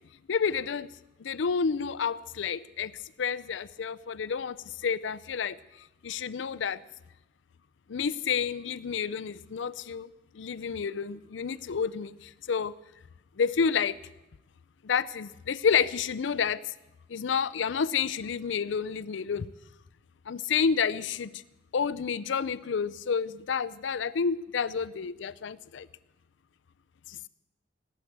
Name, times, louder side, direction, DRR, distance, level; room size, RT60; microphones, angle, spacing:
voice 1, 0.3-0.9 1.2-2.9 3.2-6.8 7.9-12.7 13.4-14.0 14.8-16.7 17.1-19.5 20.3-21.4 21.7-25.9 27.1-27.3, left 6 dB, 75° left, 17 dB, 0.5 m, -30 dB
18.0 x 8.5 x 8.0 m, 0.96 s
head